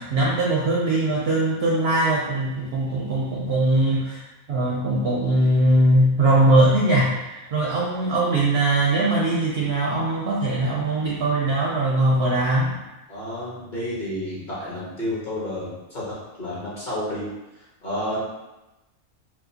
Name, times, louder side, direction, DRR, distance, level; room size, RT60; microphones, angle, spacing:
voice 1, 0.0-4.2 4.5-12.8, right 1 dB, 65° right, -4 dB, 0.6 m, -21 dB
voice 2, 13.1-17.3 17.6-18.2, left 1 dB, 35° left, -8 dB, 1.1 m, -31 dB
4.4 x 2.1 x 2.7 m, 1.0 s
omnidirectional pair, 1.5 m